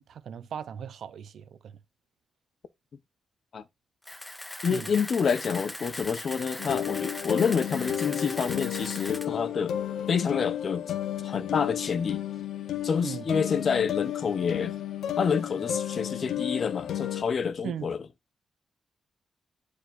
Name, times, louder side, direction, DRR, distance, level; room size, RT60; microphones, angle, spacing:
voice 1, 0.0-1.6 4.7-4.9 13.0-13.2 17.6-17.9, right 8 dB, 75° right, 0.6 m, -37 dB
Camera, 4.0-9.3, left 1 dB, 10° left, 0.7 m, -39 dB
voice 2, 4.6-9.7 10.1-10.8 11.2-12.2 12.8-14.7 15.2-18.0, left 6 dB, 55° left, 0.8 m, -28 dB
sound 1, 6.6-17.2, left 10 dB, 85° left, 0.7 m, -32 dB
11.0 x 5.0 x 2.6 m
cardioid pair, 105°, 0 cm